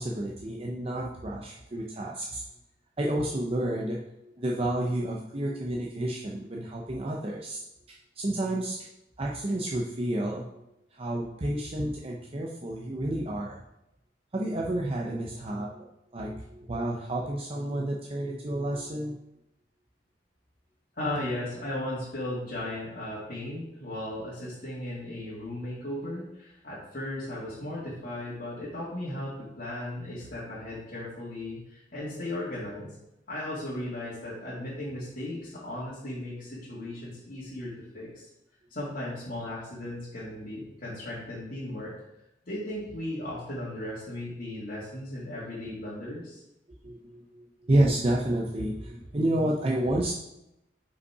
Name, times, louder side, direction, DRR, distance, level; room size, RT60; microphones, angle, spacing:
voice 1, 0.0-2.4 3.0-7.6 7.9-8.9 9.2-10.5 10.9-13.6 14.3-19.1 46.8-50.1, right 1 dB, 30° right, -2 dB, 0.6 m, -30 dB
voice 2, 21.0-32.9 33.3-38.3 38.7-41.9 42.5-46.4, left 1 dB, 50° left, -9 dB, 1.9 m, -36 dB
5.6 x 5.3 x 4.8 m, 0.87 s
head